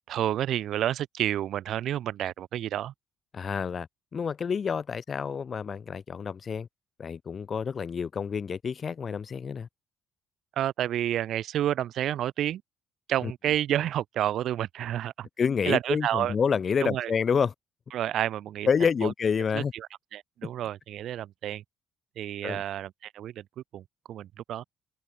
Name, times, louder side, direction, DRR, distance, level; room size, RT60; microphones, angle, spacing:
voice 1, 0.1-2.9 10.6-12.6 13.1-15.3 15.7-16.3 16.8-17.1 17.9-18.7 19.0-19.1 19.5-21.6 22.2-23.4 23.7-23.8 24.1-24.6, right 11 dB, 60° right, 0.3 m, -30 dB
voice 2, 3.3-3.9 4.1-6.7 7.0-9.7 13.2-13.3 15.4-17.5 18.7-19.7 22.4-22.6, left 6 dB, 40° left, 0.4 m, -28 dB
hypercardioid pair, 50°, 0 cm